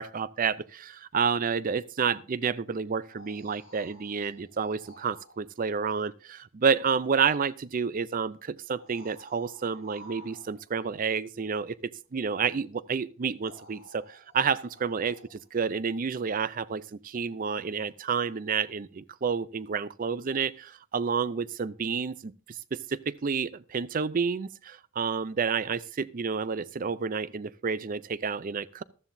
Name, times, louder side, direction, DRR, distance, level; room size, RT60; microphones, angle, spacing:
voice 1, 0.0-11.7 12.1-28.8, right 6 dB, 40° right, 0.4 m, -30 dB
sound 1, 2.8-5.4 7.3-7.4 8.6-10.8 12.7-12.8 13.4-15.5 18.6-18.7, equal, 75° right, 7.6 m, -53 dB
14.5 x 13.0 x 2.6 m
head